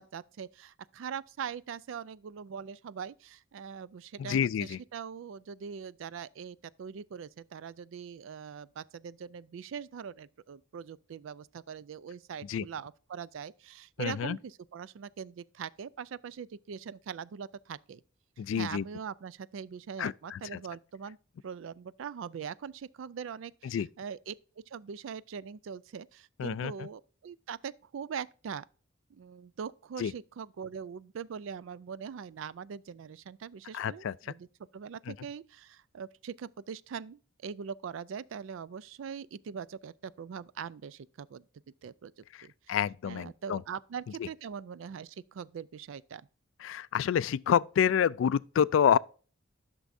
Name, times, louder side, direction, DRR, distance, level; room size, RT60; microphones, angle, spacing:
voice 1, 0.0-18.0 18.6-21.2 21.4-24.3 24.7-28.6 29.1-34.5 34.7-41.5 41.8-42.1 42.4-42.8 43.0-46.2, right 7 dB, 75° right, 0.4 m, -42 dB
voice 2, 4.2-4.8 12.5-12.6 14.0-14.4 18.4-18.9 20.0-20.6 23.6-23.9 26.4-26.9 30.0-30.1 33.7-34.1 35.1-35.2 42.7-43.6 46.6-49.0, left 8 dB, 70° left, 0.3 m, -28 dB
11.5 x 6.1 x 2.6 m
head